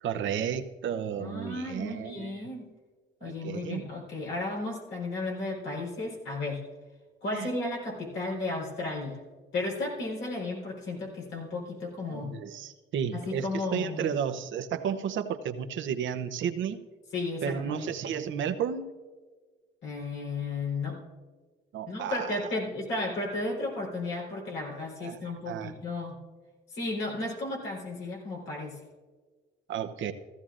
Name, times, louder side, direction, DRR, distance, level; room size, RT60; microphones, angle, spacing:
voice 1, 0.0-2.5 3.2-3.9 7.3-7.5 12.0-16.8 17.4-18.9 21.7-22.5 25.0-25.2 25.5-25.7 29.7-30.1, right 8 dB, 75° right, 8 dB, 0.8 m, -33 dB
voice 2, 1.2-2.7 3.2-6.6 7.2-9.2 9.5-12.3 13.1-14.1 17.1-18.1 19.8-21.0 21.9-26.2 26.7-28.8, left 2 dB, 85° left, -3 dB, 4.1 m, -34 dB
16.0 x 14.0 x 2.5 m, 1.4 s
cardioid pair, 90°, 20 cm